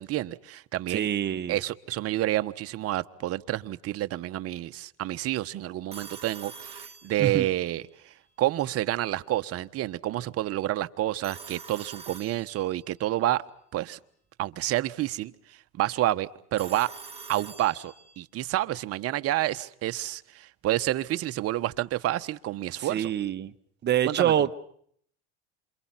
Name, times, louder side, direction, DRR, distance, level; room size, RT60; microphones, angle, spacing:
voice 1, 0.0-1.1 1.5-13.4 13.7-14.0 14.4-15.3 15.7-16.9 17.3-23.1 24.0-24.5, right 14 dB, 50° right, 1.2 m, -29 dB
voice 2, 0.9-1.6 7.2-7.4 22.8-23.5 23.8-24.5, right 10 dB, 35° right, 1.3 m, -26 dB
Telephone, 5.9-7.7 11.2-12.9 16.6-18.3, right 5 dB, 20° right, 2.5 m, -45 dB
28.0 x 27.5 x 5.8 m
supercardioid pair, 110°, 30 cm